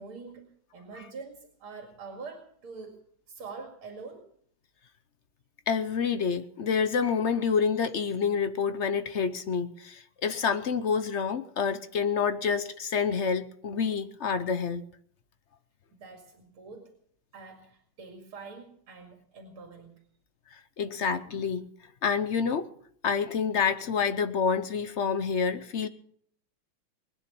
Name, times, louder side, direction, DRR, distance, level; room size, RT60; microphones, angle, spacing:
voice 1, 0.0-3.0 3.3-4.3 15.9-16.9 17.3-20.0, right 4 dB, 85° right, 2 dB, 3.2 m, -45 dB
voice 2, 5.7-14.8 20.8-21.7 22.0-22.7 23.0-25.9, left 6 dB, 65° left, 10 dB, 0.7 m, -28 dB
21.0 x 9.9 x 6.9 m, 0.62 s
omnidirectional pair, 2.3 m